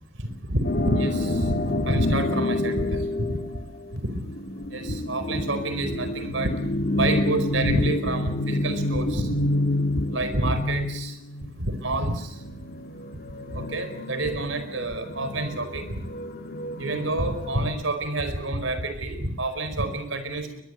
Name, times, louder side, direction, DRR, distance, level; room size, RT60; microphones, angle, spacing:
voice 1, 0.2-3.4 3.9-4.2 4.7-6.5 7.0-9.5 10.1-11.2 11.6-12.4 13.5-16.0 16.8-20.6, right 1 dB, 70° right, 10 dB, 4.7 m, -28 dB
sound 1, 0.6-17.7, left 1 dB, 55° left, 2.8 m, -29 dB
23.0 x 21.5 x 8.1 m, 0.72 s
head